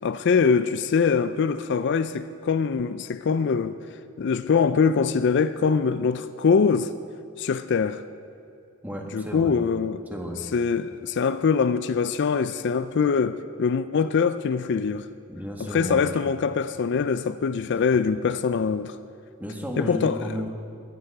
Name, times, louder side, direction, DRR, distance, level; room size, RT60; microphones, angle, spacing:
voice 1, 0.0-3.8 4.2-6.9 7.4-8.0 9.1-10.0 10.5-15.1 15.6-19.0 19.8-20.4, left 5 dB, 55° left, 0.4 m, -23 dB
voice 2, 8.8-9.6 10.1-10.4 15.3-16.2 19.4-20.5, equal, 10° right, 1.5 m, -33 dB
21.5 x 9.4 x 4.7 m
head